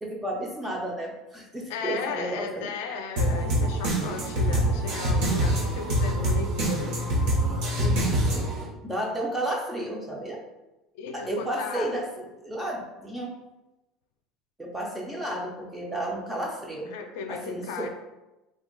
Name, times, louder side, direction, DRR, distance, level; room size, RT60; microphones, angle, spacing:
voice 1, 0.0-2.7 7.8-8.5 8.8-10.4 11.1-13.3 14.6-16.9 17.3-17.9, right 1 dB, 5° right, -2 dB, 0.4 m, -32 dB
voice 2, 1.7-7.0 10.9-11.9 16.9-17.9, left 5 dB, 80° left, 4 dB, 0.4 m, -35 dB
sound 1, 3.2-8.6, right 1 dB, 65° right, 0.8 m, -25 dB
2.8 x 2.2 x 3.8 m, 1.0 s
cardioid pair, 175°, 0 cm